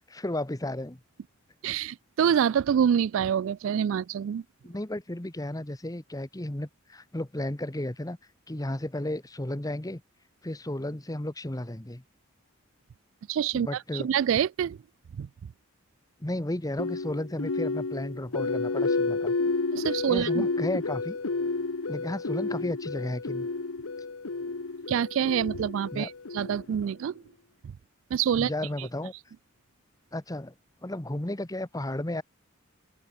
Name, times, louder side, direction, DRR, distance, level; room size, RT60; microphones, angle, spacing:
voice 1, 0.1-1.0 4.6-8.2 8.5-10.0 10.4-12.0 13.5-14.1 16.2-19.3 20.1-21.2 21.9-23.5 25.9-26.1 28.3-29.1 30.1-30.5 30.8-32.2, left 1 dB, 15° left, 1.1 m, -33 dB
voice 2, 1.6-4.4 13.3-14.8 15.2-15.3 19.7-20.4 24.9-27.1 28.1-28.5 28.8-28.9, right 8 dB, 70° right, 0.3 m, -26 dB
sound 1, 16.8-26.9, left 3 dB, 85° left, 1.0 m, -31 dB
open air
head